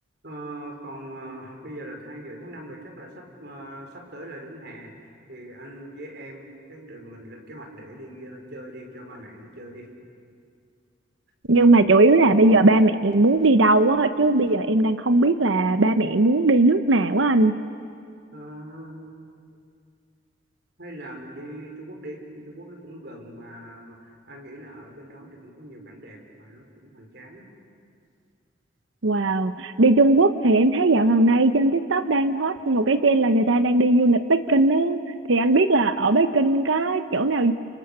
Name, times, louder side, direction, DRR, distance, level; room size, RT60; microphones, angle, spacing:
voice 1, 0.2-9.9 18.3-19.2 20.8-27.5, right 1 dB, 55° right, 2 dB, 4.7 m, -41 dB
voice 2, 11.5-17.5 29.0-35.0 35.3-37.5, right 2 dB, 75° right, 10 dB, 0.8 m, -19 dB
29.5 x 29.5 x 6.8 m, 2.3 s
head